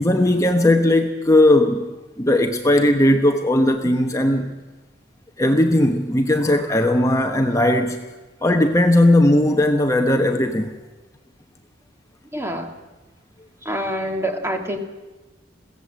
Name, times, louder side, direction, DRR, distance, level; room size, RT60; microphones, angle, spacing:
voice 1, 0.0-4.5 5.4-8.0 8.4-10.7, left 1 dB, 15° left, 4 dB, 1.1 m, -17 dB
voice 2, 12.3-12.7 13.6-14.8, equal, 15° right, 4 dB, 2.1 m, -26 dB
22.5 x 16.5 x 7.7 m, 1.2 s
head